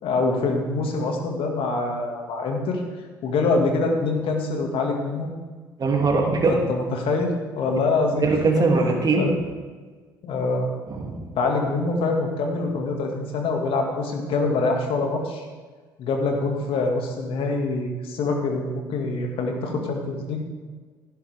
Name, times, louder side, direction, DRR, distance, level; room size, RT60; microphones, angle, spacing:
voice 1, 0.0-2.8 3.2-5.3 6.5-8.2 8.6-9.3 10.2-10.7 11.3-15.5 16.0-20.4, left 3 dB, 60° left, 2 dB, 2.1 m, -25 dB
voice 2, 5.8-6.5 8.2-9.3 10.9-11.3, right 4 dB, 40° right, 1 dB, 2.8 m, -21 dB
16.0 x 11.5 x 3.6 m, 1.4 s
hypercardioid pair, 50°, 11 cm